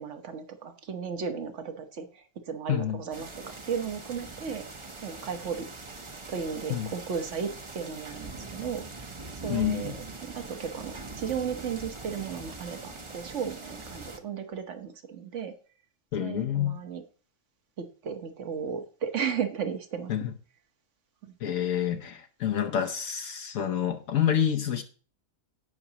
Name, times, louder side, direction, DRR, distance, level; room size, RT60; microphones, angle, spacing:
voice 1, 0.0-3.3 3.7-4.6 5.0-5.7 6.3-8.8 9.4-9.9 10.2-15.5 16.2-17.0 17.8-20.1 21.2-21.3, right 7 dB, 60° right, 1.4 m, -35 dB
voice 2, 2.7-3.0 6.7-6.9 9.5-9.9 16.1-16.8 20.1-20.3 21.4-24.8, left 10 dB, 75° left, 1.2 m, -28 dB
sound 1, 3.1-14.2, right 3 dB, 25° right, 0.8 m, -42 dB
17.0 x 6.0 x 2.9 m
omnidirectional pair, 1.4 m